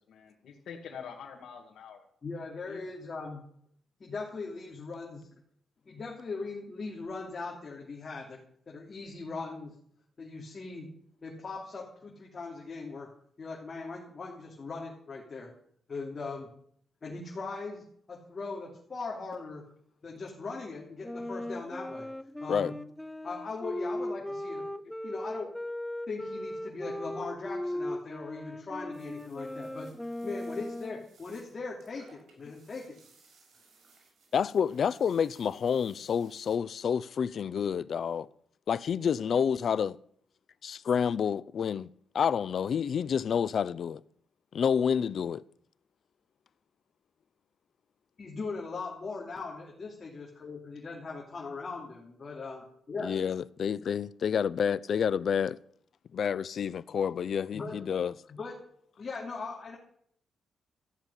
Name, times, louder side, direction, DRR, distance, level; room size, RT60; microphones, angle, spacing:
voice 1, 0.0-2.0 2.7-2.8, left 7 dB, 80° left, 2.2 m, -45 dB
voice 2, 2.2-3.4 4.0-5.3 5.9-8.4 8.7-9.7 10.2-10.9 11.2-13.1 13.4-15.5 15.9-16.4 17.0-19.6 20.0-22.1 22.4-22.7 23.2-24.7 25.0-25.5 26.1-29.9 30.2-33.0 48.2-53.1 57.5-57.8 58.3-58.5 59.0-59.8, left 4 dB, 35° left, 3.1 m, -39 dB
Wind instrument woodwind instrument, 21.0-31.1, left 1 dB, 5° left, 0.6 m, -38 dB
sound 1, 28.9-36.6, right 3 dB, 75° right, 6.3 m, -62 dB
voice 3, 34.3-38.3 38.7-40.0 40.6-41.9 42.1-44.0 44.5-45.4 53.0-55.6 56.1-58.1, left 7 dB, 60° left, 0.5 m, -29 dB
14.0 x 7.3 x 9.8 m
cardioid pair, 115°, 0 cm